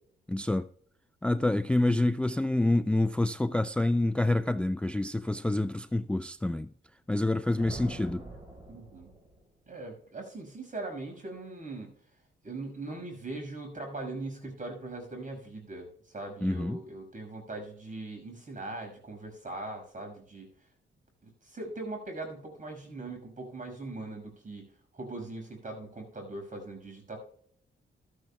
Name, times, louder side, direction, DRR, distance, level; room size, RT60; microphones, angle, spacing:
voice 1, 0.3-0.7 1.2-6.7 7.1-8.3 16.4-16.8, left 2 dB, 5° left, 0.3 m, -27 dB
sound 1, 7.6-9.6, right 1 dB, 25° right, 4.8 m, -44 dB
voice 2, 8.7-9.1 9.7-11.9 12.4-20.5 21.2-24.7 24.9-27.2, right 2 dB, 40° right, 5.9 m, -40 dB
14.5 x 13.5 x 2.3 m
cardioid pair, 80°, 20 cm